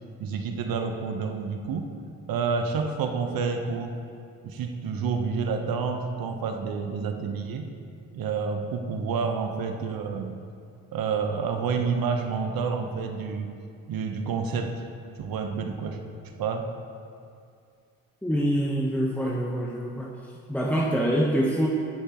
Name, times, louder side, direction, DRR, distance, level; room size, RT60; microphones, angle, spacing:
voice 1, 0.2-1.9 2.3-4.0 4.4-7.7 8.1-10.4 10.9-13.5 13.9-14.8 15.2-16.0 16.4-16.7, right 5 dB, 60° right, 5 dB, 1.2 m, -29 dB
voice 2, 18.2-20.1 20.5-21.7, equal, 5° left, -3 dB, 1.2 m, -25 dB
18.5 x 6.6 x 3.1 m, 2.3 s
hypercardioid pair, 55°, 40 cm